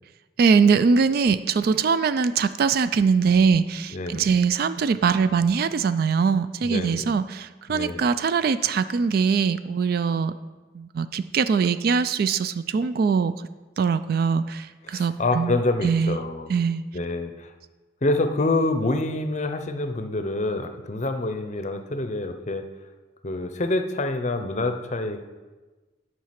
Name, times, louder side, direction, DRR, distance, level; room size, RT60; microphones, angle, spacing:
voice 1, 0.4-10.3 10.7-13.3 13.8-15.6 15.8-16.2 16.5-16.8, right 5 dB, 50° right, 14 dB, 0.3 m, -22 dB
voice 2, 3.9-4.3 6.6-7.1 7.7-8.1 14.9-16.5 16.9-17.5 18.0-22.7 23.2-25.2, left 2 dB, 40° left, 8 dB, 0.6 m, -27 dB
9.2 x 4.7 x 5.8 m, 1.2 s
head